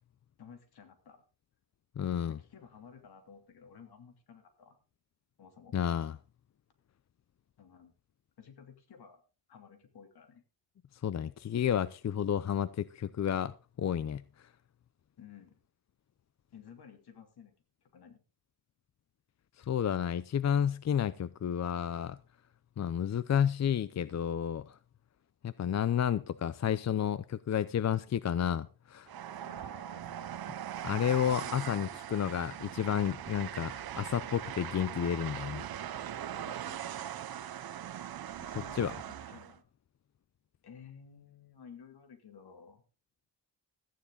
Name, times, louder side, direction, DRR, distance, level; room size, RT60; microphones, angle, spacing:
voice 1, 0.4-1.2 2.3-4.8 5.4-5.7 7.6-7.9 8.4-9.2 9.5-10.4 15.2-15.6 16.5-17.5 17.8-18.2 29.4-30.5 31.3-31.9 36.4-37.1 38.4-39.7 40.6-42.8, left 7 dB, 75° left, 3.0 m, -54 dB
voice 2, 2.0-2.4 5.7-6.2 11.0-14.5 19.6-22.2 22.8-24.8 25.4-29.1 30.8-35.7 38.7-38.9, left 9 dB, 45° left, 0.6 m, -31 dB
Train, 29.1-39.6, right 10 dB, 65° right, 0.8 m, -41 dB
14.0 x 10.0 x 3.9 m
cardioid pair, 105°, 39 cm